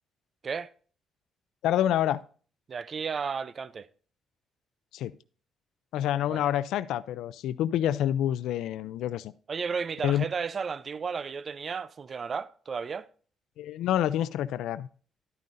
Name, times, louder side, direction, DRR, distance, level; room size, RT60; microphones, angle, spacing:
voice 1, 1.6-2.2 4.9-5.1 5.9-9.3 10.0-10.2 13.6-14.9, left 11 dB, 85° left, 0.4 m, -27 dB
voice 2, 2.7-3.9 6.3-6.5 9.5-13.1, right 5 dB, 45° right, 0.5 m, -33 dB
12.0 x 9.3 x 2.6 m
cardioid pair, 90°, 0 cm